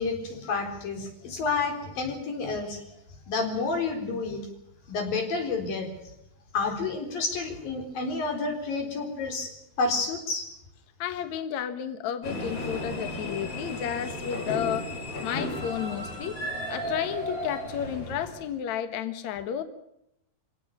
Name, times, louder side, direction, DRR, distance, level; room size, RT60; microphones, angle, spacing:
voice 1, 0.0-2.8 3.3-4.5 4.9-5.9 6.5-9.5 9.8-10.5, left 4 dB, 50° left, 5 dB, 5.6 m, -29 dB
voice 2, 11.0-14.9 15.2-16.4 16.7-19.6, left 9 dB, 70° left, 10 dB, 1.7 m, -32 dB
sound 1, 12.2-18.5, left 1 dB, 30° left, 6.8 m, -34 dB
26.0 x 17.5 x 7.1 m, 0.79 s
omnidirectional pair, 5.5 m